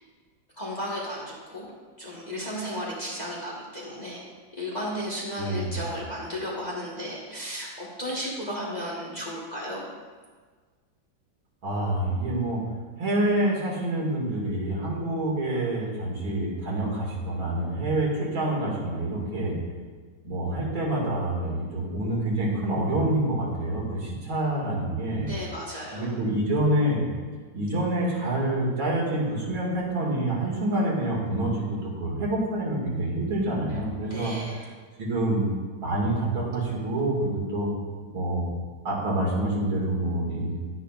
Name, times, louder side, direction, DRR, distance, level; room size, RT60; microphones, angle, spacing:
voice 1, 0.6-1.7 2.0-4.2 4.5-9.9 25.2-26.1 33.7-34.7, equal, 25° left, -5 dB, 1.3 m, -34 dB
voice 2, 5.4-5.8 11.6-12.6 13.0-19.5 20.2-25.3 25.9-27.1 27.5-34.3 35.0-35.4 35.8-37.7 38.1-38.5 38.8-40.6, right 1 dB, 80° right, -4 dB, 2.9 m, -27 dB
10.5 x 9.8 x 2.4 m, 1.5 s
omnidirectional pair, 2.1 m